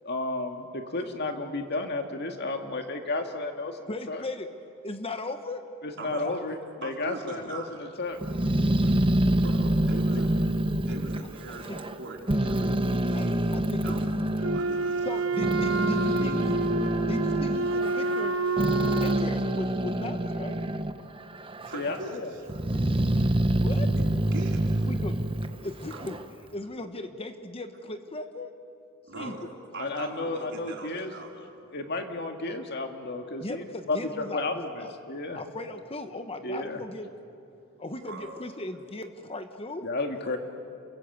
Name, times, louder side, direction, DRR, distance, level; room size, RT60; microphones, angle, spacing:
voice 1, 0.0-4.2 5.8-6.6 6.8-7.6 8.0-8.2 21.7-22.3 29.8-31.1 31.7-35.4 36.4-36.8 39.8-40.4, left 2 dB, 55° left, 4 dB, 2.0 m, -32 dB
voice 2, 3.9-4.5 4.8-5.6 6.2-6.3 11.7-11.8 13.1-13.9 15.0-16.6 17.1-18.3 19.0-20.6 22.7-23.3 23.6-23.9 24.9-25.2 25.6-26.2 26.5-28.5 29.2-29.3 33.4-34.9 35.3-37.1 37.8-39.8, left 2 dB, 25° left, 8 dB, 1.1 m, -37 dB
voice 3, 6.0-6.3 6.8-7.8 8.8-9.0 9.4-10.4 10.8-13.5 13.8-14.2 14.5-15.3 18.9-19.0 21.6-22.7 23.9-24.9 25.9-26.0 29.1-29.4 29.7-31.4 37.9-38.4, right 2 dB, 60° right, -1 dB, 4.5 m, -41 dB
Growling, 8.2-12.0 12.3-14.6 15.2-21.0 21.3-22.0 22.5-26.3, right 1 dB, 25° right, 0.9 m, -26 dB
Wind instrument woodwind instrument, 14.4-19.3, right 3 dB, 80° right, 1.1 m, -28 dB
29.0 x 23.0 x 8.0 m, 2.6 s
head